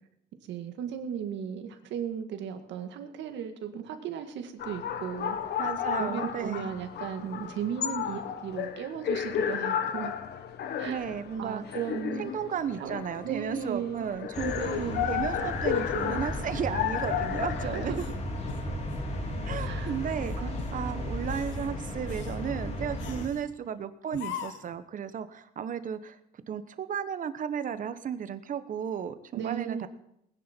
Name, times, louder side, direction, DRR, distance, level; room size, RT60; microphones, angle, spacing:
voice 1, 0.5-5.6 6.0-10.1 10.8-11.1 11.4-12.3 12.8-12.9 13.2-14.1 14.6-15.1 17.6-18.1 19.6-20.0 20.4-21.0 29.3-29.9, right 8 dB, 80° right, 6 dB, 1.9 m, -36 dB
sound 1, 4.6-17.9, left 9 dB, 65° left, 1.3 m, -33 dB
voice 2, 5.6-6.7 10.8-11.6 12.2-14.5 15.1-17.9 19.5-20.4 20.7-26.2 26.5-29.9, right 8 dB, 45° right, 12 dB, 1.1 m, -34 dB
sound 2, 14.3-23.3, left 1 dB, 35° left, 2.9 m, -34 dB
sound 3, 17.9-19.1 19.5-19.7 20.2-20.8 21.2-21.7 22.1-22.4 23.0-23.5 24.1-24.8, left 9 dB, 85° left, 1.4 m, -42 dB
20.5 x 10.5 x 4.5 m, 0.78 s
cardioid pair, 130°, 19 cm